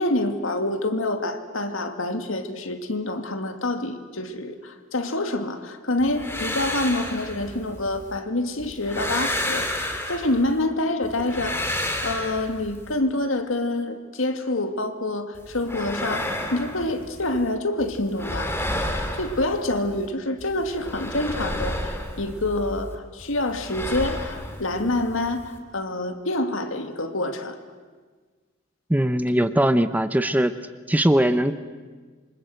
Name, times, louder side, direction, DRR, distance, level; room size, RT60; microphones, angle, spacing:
voice 1, 0.0-18.5 18.9-27.6, left 2 dB, 70° left, 7 dB, 2.2 m, -27 dB
sound 1, 6.0-8.2 8.6-10.6 11.0-12.9 15.3-17.5 17.8-20.1 20.4-22.9 23.2-25.6, left 1 dB, 10° left, 2.7 m, -31 dB
voice 2, 28.9-30.5 30.9-31.5, right 1 dB, 10° right, 11 dB, 0.7 m, -20 dB
27.0 x 25.0 x 7.8 m, 1.5 s
head